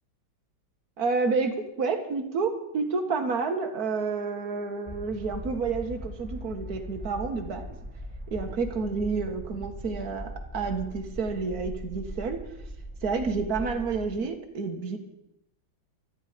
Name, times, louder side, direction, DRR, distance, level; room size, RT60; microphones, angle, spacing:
voice 1, 1.0-7.8 8.3-12.4 13.0-15.0, right 4 dB, 45° right, 5 dB, 2.0 m, -29 dB
sound 1, 4.9-14.2, equal, 10° right, 0.5 m, -40 dB
17.0 x 13.0 x 5.2 m, 0.83 s
omnidirectional pair, 2.3 m